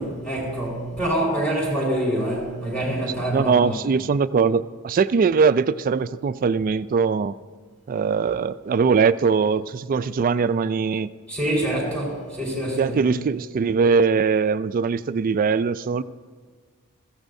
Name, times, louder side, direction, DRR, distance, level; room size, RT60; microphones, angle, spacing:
voice 1, 0.0-3.7 11.3-13.2, right 1 dB, 5° left, -5 dB, 4.5 m, -26 dB
voice 2, 3.3-7.4 7.9-11.1 12.8-16.0, right 5 dB, 40° right, 15 dB, 0.3 m, -21 dB
21.5 x 14.5 x 2.7 m, 1.5 s
head